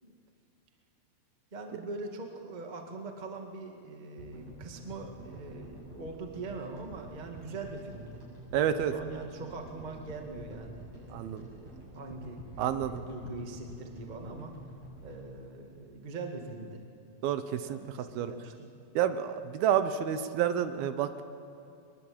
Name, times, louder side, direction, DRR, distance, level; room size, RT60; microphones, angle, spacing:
voice 1, 1.5-8.2 8.5-12.4 12.8-14.6 15.0-16.8 17.6-18.7, right 3 dB, 20° right, 3 dB, 1.2 m, -42 dB
sound 1, 4.2-16.5, right 1 dB, 35° right, 8.7 m, -48 dB
voice 2, 8.5-8.9 11.1-11.5 12.6-13.0 17.2-18.3 19.0-21.2, right 9 dB, 80° right, 10 dB, 2.8 m, -29 dB
23.0 x 22.0 x 8.8 m, 2.7 s
omnidirectional pair, 4.4 m